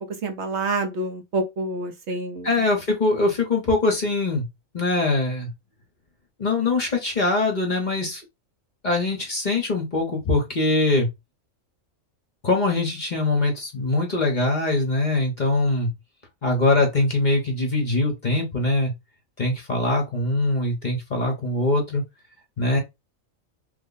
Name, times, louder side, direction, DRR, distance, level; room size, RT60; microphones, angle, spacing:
voice 1, 0.2-2.5, right 2 dB, 65° right, 0.9 m, -27 dB
voice 2, 2.4-4.5 4.7-5.5 6.4-8.2 8.8-11.1 12.4-15.9 16.4-18.9 19.4-22.0 22.6-22.8, left 2 dB, 40° left, 0.9 m, -22 dB
3.2 x 2.2 x 3.8 m
omnidirectional pair, 1.4 m